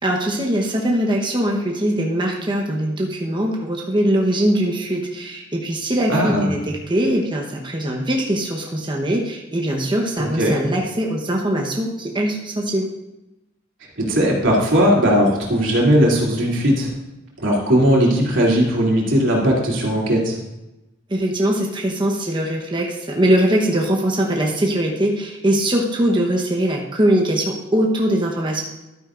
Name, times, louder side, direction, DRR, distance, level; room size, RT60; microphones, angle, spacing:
voice 1, 0.0-12.9 21.1-28.6, right 1 dB, 25° right, -1 dB, 1.0 m, -21 dB
voice 2, 6.1-6.5 10.2-10.5 14.0-16.9 17.4-20.4, equal, 85° right, -3 dB, 2.9 m, -18 dB
12.5 x 9.3 x 2.5 m, 0.96 s
head